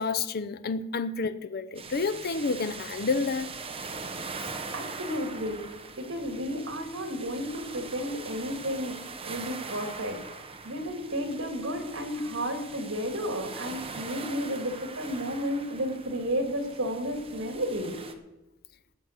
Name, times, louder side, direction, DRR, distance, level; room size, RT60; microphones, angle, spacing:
voice 1, 0.0-3.5, left 4 dB, 50° left, 0.6 m, -29 dB
sound 1, 1.7-18.1, right 4 dB, 30° right, 1.0 m, -42 dB
voice 2, 4.7-5.6 6.0-8.9 9.2-18.0, equal, 70° right, 2.6 m, -32 dB
15.5 x 6.3 x 8.1 m
head